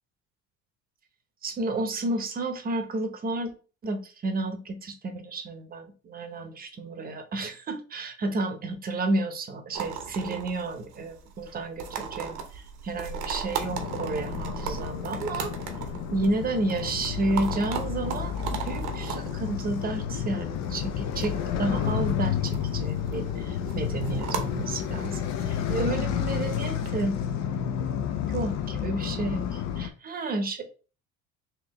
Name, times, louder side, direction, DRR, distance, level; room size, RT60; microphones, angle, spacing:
voice 1, 1.4-3.5 3.8-15.5 16.1-25.2 25.5-27.1 28.3-30.7, right 2 dB, 30° right, 7 dB, 0.8 m, -31 dB
sound 1, 9.7-26.9, right 7 dB, 80° right, 0.9 m, -38 dB
sound 2, 13.6-29.9, left 9 dB, 65° left, 0.6 m, -31 dB
4.4 x 2.7 x 2.9 m, 0.36 s
cardioid pair, 110°, 30 cm